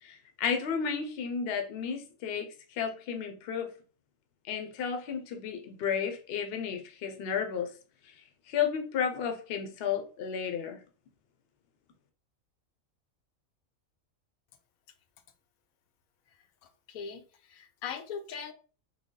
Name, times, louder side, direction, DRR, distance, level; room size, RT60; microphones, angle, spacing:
voice 1, 0.0-3.7 4.4-7.7 8.0-10.8, left 7 dB, 55° left, 0.7 m, -33 dB
voice 2, 16.3-18.5, left 6 dB, 90° left, 1.0 m, -41 dB
3.3 x 2.1 x 3.7 m
omnidirectional pair, 1.4 m